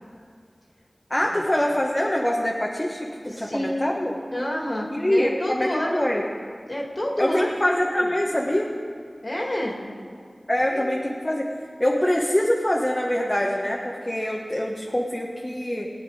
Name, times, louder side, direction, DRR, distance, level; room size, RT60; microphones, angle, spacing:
voice 1, 1.1-4.2 4.9-6.2 7.2-8.7 10.5-11.5 11.8-15.9, left 1 dB, 25° left, -2 dB, 1.3 m, -24 dB
voice 2, 3.2-3.9 4.3-6.0 6.7-7.5 8.0-8.1 9.2-9.8 10.7-11.0, left 1 dB, 45° left, -1 dB, 2.2 m, -28 dB
18.5 x 9.2 x 4.9 m, 2.2 s
wide cardioid pair, 40°, 0 cm